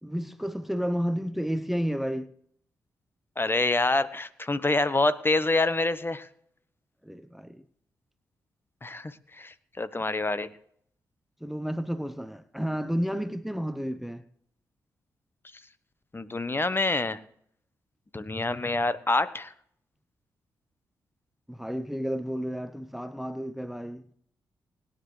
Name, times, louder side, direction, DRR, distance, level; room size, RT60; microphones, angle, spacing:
voice 1, 0.0-2.3 7.0-7.6 11.4-14.2 21.5-24.1, equal, ahead, 0.8 m, -31 dB
voice 2, 3.4-6.3 8.8-10.5 16.1-17.2 18.1-19.5, left 2 dB, 25° left, 1.1 m, -26 dB
20.5 x 10.0 x 3.2 m
hypercardioid pair, 40°, 8 cm